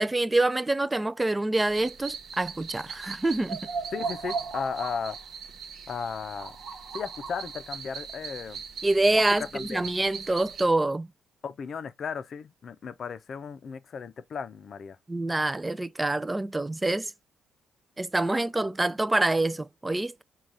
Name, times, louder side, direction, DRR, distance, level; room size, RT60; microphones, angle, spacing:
voice 1, 0.0-3.7 8.8-11.1 15.1-17.1 18.0-20.2, right 2 dB, 15° right, 0.3 m, -26 dB
sound 1, 1.6-10.6, right 5 dB, 60° right, 0.7 m, -38 dB
voice 2, 3.9-5.2 5.9-6.6 6.9-8.6 9.1-9.9 11.4-15.0, left 6 dB, 50° left, 0.5 m, -35 dB
3.8 x 2.3 x 4.6 m
cardioid pair, 90°, 0 cm